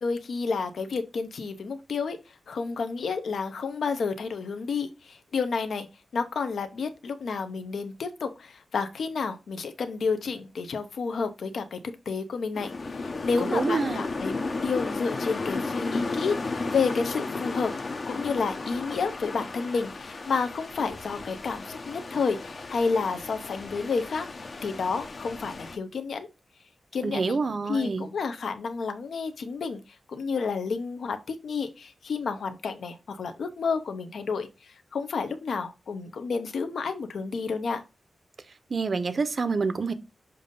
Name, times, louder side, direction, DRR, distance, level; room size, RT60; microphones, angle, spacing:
voice 1, 0.0-2.2 2.5-5.9 6.1-11.8 12.1-17.7 18.1-24.3 24.6-26.3 26.9-27.4 27.7-29.8 30.1-37.8, left 5 dB, 75° left, 0.8 m, -30 dB
sound 1, 12.6-25.8, left 3 dB, 40° left, 0.7 m, -34 dB
voice 2, 13.4-14.0 27.0-28.1 38.7-39.9, right 4 dB, 40° right, 0.6 m, -27 dB
7.0 x 2.7 x 5.2 m
wide cardioid pair, 175°, 0 cm